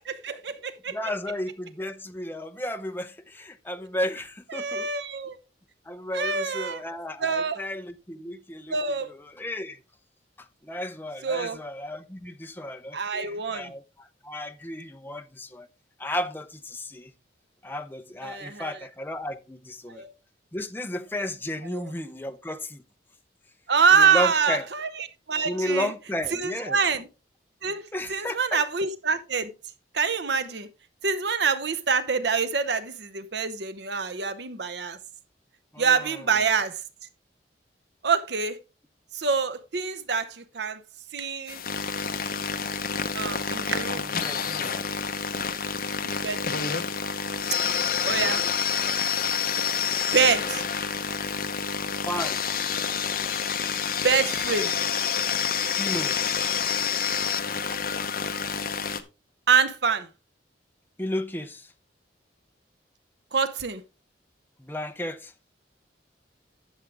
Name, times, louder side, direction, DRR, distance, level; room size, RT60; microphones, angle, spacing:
voice 1, 0.0-1.0 4.5-5.4 6.1-6.8 7.2-7.6 8.7-9.1 11.2-11.6 12.9-13.7 18.2-18.8 19.9-20.1 21.7-21.9 23.7-24.9 25.3-25.9 26.3-27.1 27.6-27.8 28.1-29.5 29.9-30.7 31.0-35.0 35.8-36.8 38.0-38.6 39.1-40.8 41.1-41.6 43.1-44.1 46.0-46.7 48.0-48.4 50.1-50.6 54.0-54.7 59.5-60.1 63.3-63.8, right 5 dB, 65° right, 0.8 m, -25 dB
voice 2, 0.9-4.9 5.9-9.8 10.4-15.7 16.0-17.1 17.6-20.0 20.5-22.8 23.9-24.6 25.4-26.8 27.9-28.6 35.7-36.3 43.9-44.7 47.9-48.3 52.0-52.4 55.8-56.2 61.0-61.7 64.6-65.3, left 1 dB, 10° left, 0.6 m, -33 dB
sound 1, 41.5-59.0, left 6 dB, 50° left, 0.9 m, -28 dB
11.5 x 7.3 x 3.4 m
head